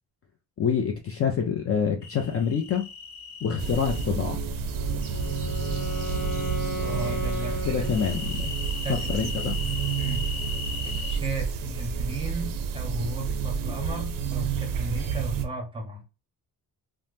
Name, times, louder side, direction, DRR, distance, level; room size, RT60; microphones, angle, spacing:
voice 1, 0.6-2.8 3.4-4.4 7.6-8.5 9.1-9.5, left 7 dB, 35° left, 0.4 m, -26 dB
sound 1, 2.0-4.1 5.0-6.6 7.8-11.2, left 5 dB, 85° left, 0.7 m, -38 dB
sound 2, 3.6-15.5, right 6 dB, 55° right, 0.5 m, -30 dB
Wind instrument woodwind instrument, 4.7-8.6, left 2 dB, 60° left, 0.9 m, -35 dB
voice 2, 6.8-7.8 8.8-9.0 10.0-10.2 11.1-16.0, right 3 dB, 15° right, 0.7 m, -35 dB
2.7 x 2.0 x 3.2 m
cardioid pair, 150°, 39 cm